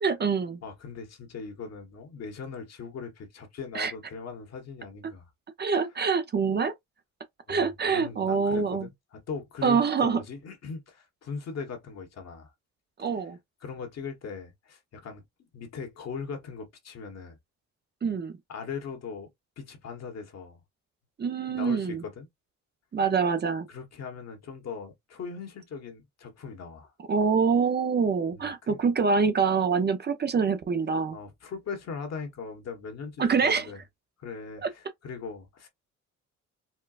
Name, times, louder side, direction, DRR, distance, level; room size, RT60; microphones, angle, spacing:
voice 1, 0.0-0.6 3.7-3.9 5.6-6.7 7.5-8.9 9.6-10.2 13.0-13.4 18.0-18.3 21.2-22.0 22.9-23.7 27.1-31.2 33.2-33.7 34.6-34.7, right 5 dB, 35° right, 0.6 m, -25 dB
voice 2, 0.6-5.3 7.5-12.5 13.0-13.1 13.6-17.4 18.5-19.3 19.6-20.6 21.5-22.3 23.7-26.9 28.3-28.8 31.1-33.8 34.2-35.7, left 5 dB, 60° left, 1.3 m, -40 dB
4.3 x 2.2 x 2.4 m
cardioid pair, 90°, 30 cm